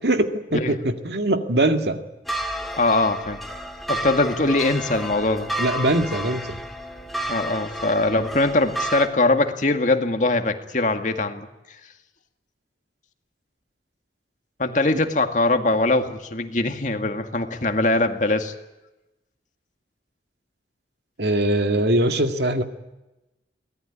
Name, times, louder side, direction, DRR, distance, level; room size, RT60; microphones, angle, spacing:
voice 1, 0.0-2.0 5.6-6.6 21.2-22.6, right 1 dB, 70° right, 6 dB, 2.1 m, -22 dB
sound 1, 2.2-9.1, right 1 dB, ahead, 2.2 m, -31 dB
voice 2, 2.8-3.4 3.9-5.5 7.3-11.5 14.6-18.5, left 2 dB, 45° left, 6 dB, 2.1 m, -22 dB
24.0 x 18.5 x 10.0 m, 0.99 s
head